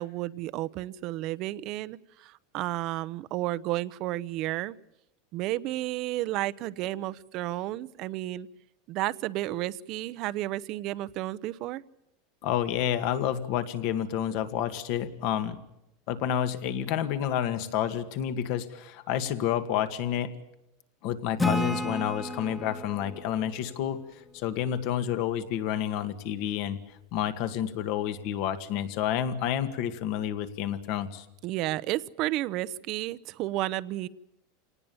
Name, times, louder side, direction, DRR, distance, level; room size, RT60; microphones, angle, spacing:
voice 1, 0.0-4.7 5.3-8.5 8.9-11.8 31.4-34.1, right 16 dB, 40° right, 16 dB, 0.8 m, -32 dB
voice 2, 12.4-15.6 16.1-20.3 21.0-24.0 24.3-26.8 27.1-31.3, left 10 dB, 50° left, 10 dB, 2.0 m, -29 dB
Acoustic guitar / Strum, 21.4-24.8, left 2 dB, 5° left, 1.4 m, -32 dB
27.0 x 19.0 x 7.1 m, 0.87 s
supercardioid pair, 155°, 0 cm